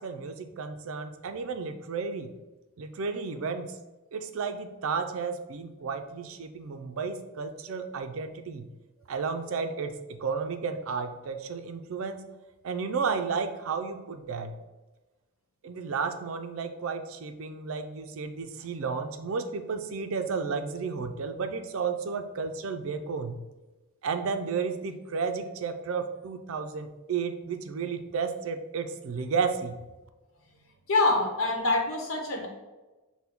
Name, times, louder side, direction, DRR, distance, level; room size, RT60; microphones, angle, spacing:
voice 1, 0.0-2.3 2.8-3.7 4.1-8.7 9.1-12.2 12.6-14.5 15.6-23.3 24.0-29.8, right 5 dB, 75° right, 7 dB, 0.4 m, -32 dB
voice 2, 30.9-32.5, left 2 dB, 75° left, 1 dB, 0.9 m, -25 dB
5.8 x 2.2 x 3.4 m, 1.2 s
head